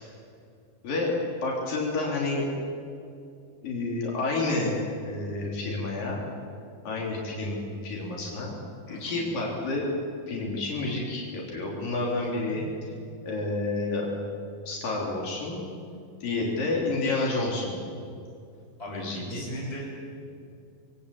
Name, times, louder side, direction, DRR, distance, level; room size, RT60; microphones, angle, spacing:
voice 1, 0.8-1.2 1.4-2.5 3.6-6.2 6.8-8.5 8.9-9.9 10.3-12.6 13.2-14.1 14.7-15.7 16.2-17.8 18.9-19.4, left 2 dB, 70° left, -2 dB, 5.1 m, -29 dB
voice 2, 8.9-9.2 12.5-12.7 18.8-19.9, right 1 dB, 15° left, -3 dB, 8.1 m, -38 dB
27.0 x 23.0 x 8.4 m, 2.4 s
omnidirectional pair, 4.0 m